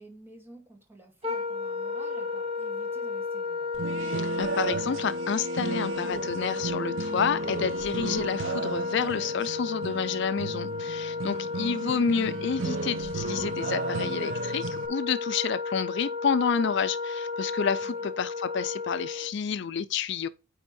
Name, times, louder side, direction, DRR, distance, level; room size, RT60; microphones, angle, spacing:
voice 1, 0.0-3.7 17.8-18.1, right 1 dB, 10° right, 1.9 m, -51 dB
Wind instrument woodwind instrument, 1.2-19.3, left 4 dB, 30° right, 1.2 m, -33 dB
sound 1, 3.7-14.9, right 4 dB, 80° right, 0.7 m, -35 dB
voice 2, 4.0-20.3, left 6 dB, 65° left, 0.4 m, -29 dB
9.1 x 3.5 x 4.3 m
head